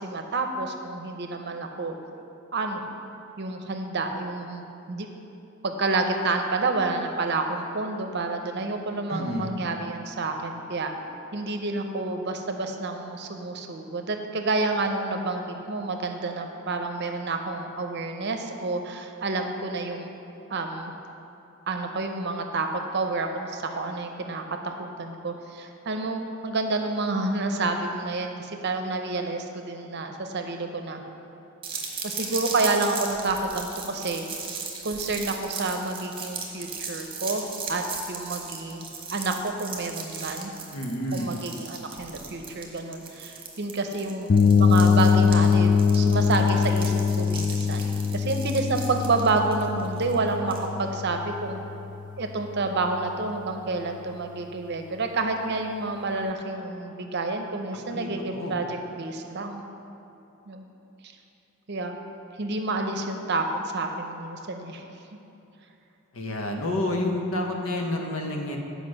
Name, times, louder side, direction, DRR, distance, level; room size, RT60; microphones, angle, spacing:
voice 1, 0.0-2.0 2.5-2.9 3.4-5.1 5.6-10.9 11.3-20.1 20.5-20.9 21.7-31.0 32.0-34.3 34.8-38.8 39.1-40.5 41.1-44.3 44.6-51.6 52.2-59.6 60.5-60.7 61.7-61.9 62.4-64.8, right 3 dB, 55° right, 5 dB, 0.7 m, -29 dB
voice 2, 9.1-9.5 40.7-41.3 57.9-58.6 66.1-68.6, left 1 dB, 85° left, 2 dB, 1.0 m, -29 dB
sound 1, 31.6-50.7, right 4 dB, 25° right, 1.1 m, -37 dB
sound 2, 44.3-52.0, left 6 dB, 40° left, 0.4 m, -22 dB
8.1 x 5.1 x 6.4 m, 2.9 s
head